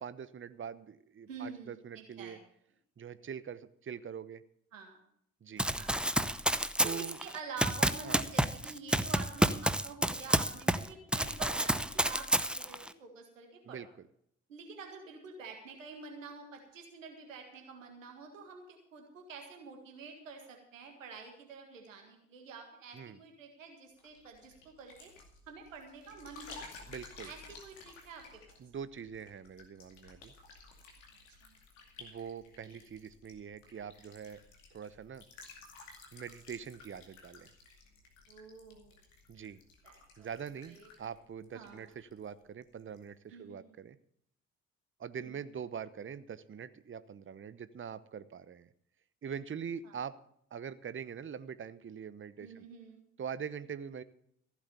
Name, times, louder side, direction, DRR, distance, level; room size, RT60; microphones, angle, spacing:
voice 1, 0.0-2.4 3.0-4.4 5.4-5.7 6.8-7.2 8.0-8.2 13.6-14.1 22.9-23.2 26.9-27.3 28.6-30.3 32.0-34.4 34.7-35.2 36.1-37.5 39.3-39.6 40.2-44.0 45.0-48.7 49.2-50.2 50.5-52.7 53.2-54.0, right 7 dB, 30° right, 15 dB, 0.9 m, -43 dB
voice 2, 1.3-2.4 4.7-5.0 5.8-6.2 6.8-13.8 14.5-25.1 25.5-26.6 27.3-28.6 31.4-31.6 38.3-38.9 39.8-40.3 40.7-40.9 41.5-41.9 43.3-43.8 45.2-45.3 49.8-49.9 52.4-53.0, right 5 dB, 85° right, 3 dB, 1.8 m, -48 dB
Run, 5.6-10.9 11.1-12.9, right 1 dB, ahead, 0.8 m, -29 dB
sound 1, 24.0-42.3 42.6-43.0, left 4 dB, 80° left, 2.4 m, -55 dB
15.0 x 8.4 x 6.6 m, 0.69 s
figure-of-eight pair, 40°, 38 cm